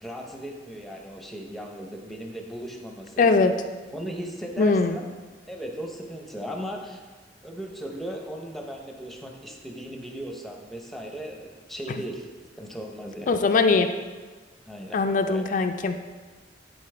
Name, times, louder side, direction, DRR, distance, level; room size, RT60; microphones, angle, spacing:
voice 1, 0.0-3.3 3.9-5.1 5.5-7.0 7.4-12.3 12.5-13.4 14.7-15.0 15.3-15.4, equal, ahead, 1 dB, 0.7 m, -37 dB
voice 2, 3.2-3.6 4.6-5.0 13.3-13.9 14.9-16.1, left 4 dB, 45° left, 6 dB, 0.3 m, -21 dB
11.5 x 4.1 x 3.3 m, 1.4 s
head